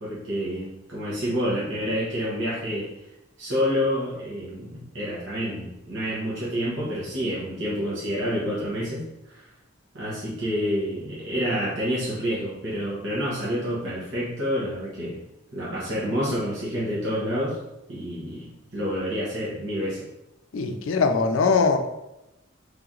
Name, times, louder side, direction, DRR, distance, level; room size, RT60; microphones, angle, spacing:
voice 1, 0.0-2.9 3.4-9.0 9.3-9.5 9.9-15.2 15.5-17.6 17.9-20.0, equal, 75° right, -8 dB, 1.2 m, -28 dB
voice 2, 20.5-21.8, left 4 dB, 80° left, 6 dB, 0.4 m, -21 dB
3.3 x 2.9 x 3.7 m, 0.93 s
head